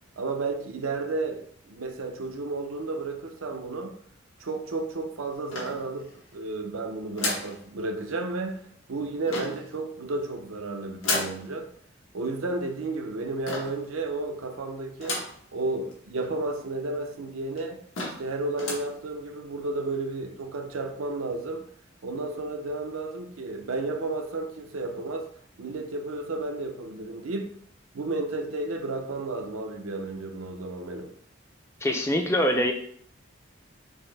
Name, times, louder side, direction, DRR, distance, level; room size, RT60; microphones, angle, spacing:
voice 1, 0.2-3.9 4.4-8.6 8.9-11.7 12.1-15.2 15.5-21.6 22.0-25.3 25.6-27.5 27.9-31.1, right 2 dB, 85° right, 5 dB, 0.6 m, -32 dB
sound 1, 5.5-6.3 7.2-7.6 9.3-9.7 11.0-11.4 13.5-13.8 15.0-15.4 15.9-16.0 16.2-16.3 17.1-17.2 17.6-17.7 17.9-18.3 18.6-18.9, left 2 dB, 85° left, 1.2 m, -32 dB
voice 2, 31.8-32.7, equal, 15° left, 3 dB, 0.3 m, -24 dB
5.3 x 2.0 x 3.2 m, 0.62 s
head